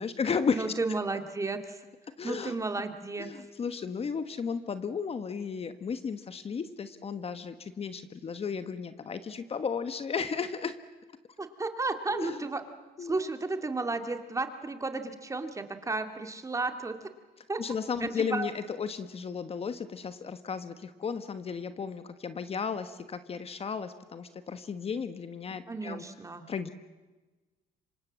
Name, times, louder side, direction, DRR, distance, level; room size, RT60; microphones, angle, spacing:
voice 1, 0.0-0.7 2.2-2.5 3.2-10.7 12.1-12.4 13.0-13.3 17.6-26.0 26.5-26.7, left 6 dB, 35° left, 11 dB, 1.4 m, -34 dB
voice 2, 0.5-1.8 2.2-3.3 11.4-12.6 13.0-17.1 17.5-17.6 18.0-18.5 25.7-26.4, right 3 dB, 20° right, 7 dB, 2.4 m, -33 dB
26.5 x 24.5 x 7.5 m, 1.2 s
cardioid pair, 110°, 17 cm